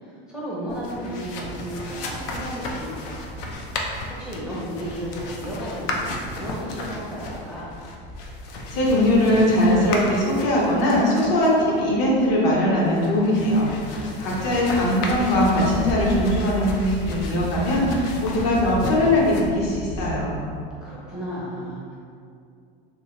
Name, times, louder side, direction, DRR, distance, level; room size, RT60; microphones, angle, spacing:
voice 1, 0.0-3.5 4.1-7.7 14.2-15.3 20.8-22.0, equal, 5° right, -8 dB, 0.6 m, -34 dB
sound 1, 0.7-20.6, left 1 dB, 75° left, 0.6 m, -33 dB
voice 2, 8.7-20.4, left 1 dB, 55° left, -4 dB, 0.9 m, -21 dB
3.0 x 2.7 x 2.8 m, 2.4 s
supercardioid pair, 125°, 29 cm